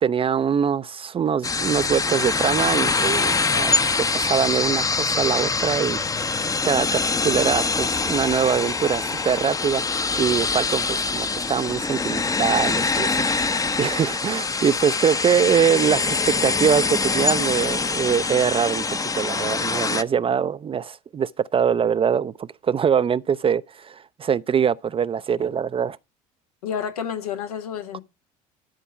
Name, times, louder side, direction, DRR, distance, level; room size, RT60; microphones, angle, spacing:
voice 1, 0.0-3.8 4.1-6.4 6.6-9.8 10.2-26.0, right 7 dB, 30° right, 0.5 m, -23 dB
sound 1, 1.4-20.0, left 4 dB, 20° left, 0.7 m, -24 dB
voice 2, 26.6-28.0, left 8 dB, 85° left, 1.5 m, -30 dB
12.5 x 4.5 x 7.0 m
hypercardioid pair, 65°, 19 cm